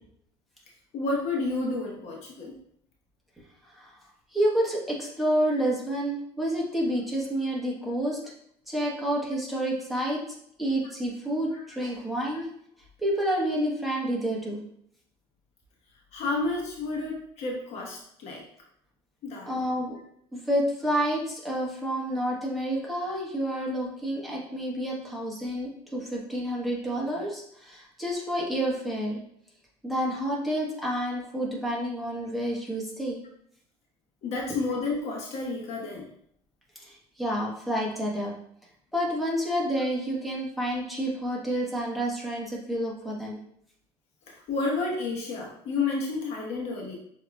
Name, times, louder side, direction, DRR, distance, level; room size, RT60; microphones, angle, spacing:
voice 1, 0.9-2.5 11.5-11.6 16.1-18.4 19.2-19.5 34.2-36.1 44.3-47.0, left 3 dB, 60° left, -2 dB, 1.2 m, -30 dB
voice 2, 4.3-8.2 8.7-10.2 10.6-12.5 13.0-14.6 19.5-19.9 20.3-29.2 29.8-33.2 36.8-38.3 38.9-43.4, equal, ahead, -5 dB, 1.2 m, -29 dB
6.8 x 2.9 x 2.3 m, 0.69 s
cardioid pair, 120°, 13 cm